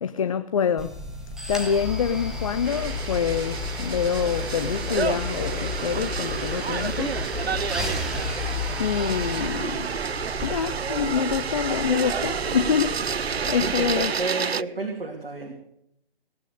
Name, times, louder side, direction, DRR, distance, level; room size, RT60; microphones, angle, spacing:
voice 1, 0.0-1.0 1.5-7.2 8.8-9.9 10.4-14.1, left 7 dB, 35° left, 0.6 m, -26 dB
sound 1, 0.8-14.3, left 3 dB, ahead, 0.9 m, -33 dB
sound 2, 2.7-14.6, right 6 dB, 90° right, 0.5 m, -30 dB
voice 2, 13.6-15.5, right 3 dB, 65° right, 3.1 m, -31 dB
19.0 x 8.9 x 6.7 m
figure-of-eight pair, 140°, 31 cm